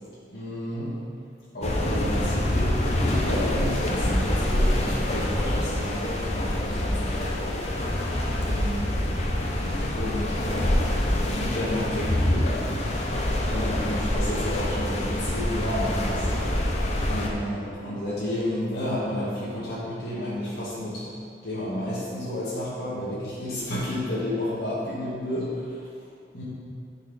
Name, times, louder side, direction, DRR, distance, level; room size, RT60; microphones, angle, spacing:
voice 1, 0.3-0.9 1.5-8.0 8.4-8.8 9.7-10.7 11.2-12.8 13.4-16.3 17.1-21.0 21.4-25.5 26.3-26.4, left 1 dB, 60° left, -10 dB, 1.4 m, -31 dB
sound 1, 1.6-17.3, left 1 dB, 35° left, 0.7 m, -26 dB
9.2 x 4.4 x 3.9 m, 2.4 s
head